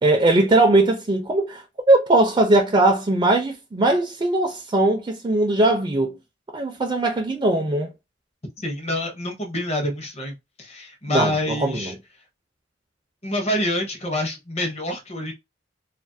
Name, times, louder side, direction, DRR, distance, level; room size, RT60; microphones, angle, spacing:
voice 1, 0.0-6.2 6.5-7.9 11.1-11.9, right 2 dB, 25° right, 0.4 m, -20 dB
voice 2, 8.6-11.9 13.2-15.3, left 1 dB, 35° left, 0.8 m, -27 dB
2.4 x 2.4 x 2.6 m
head